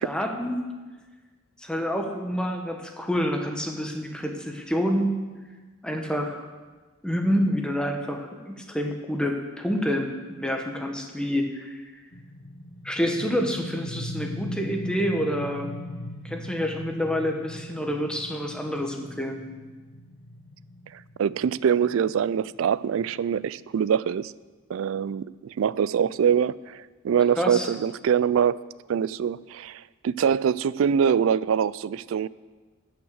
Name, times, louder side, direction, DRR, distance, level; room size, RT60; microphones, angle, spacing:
voice 1, 0.0-0.6 1.6-5.2 5.8-6.4 7.0-11.8 12.8-15.7 16.2-19.4 27.4-27.7, equal, 5° left, 3 dB, 1.1 m, -28 dB
sound 1, 12.1-23.6, left 1 dB, 65° left, 1.3 m, -39 dB
voice 2, 20.9-24.3 24.7-28.6 28.9-32.3, right 7 dB, 70° right, 20 dB, 0.3 m, -24 dB
15.0 x 5.9 x 6.5 m, 1.3 s
head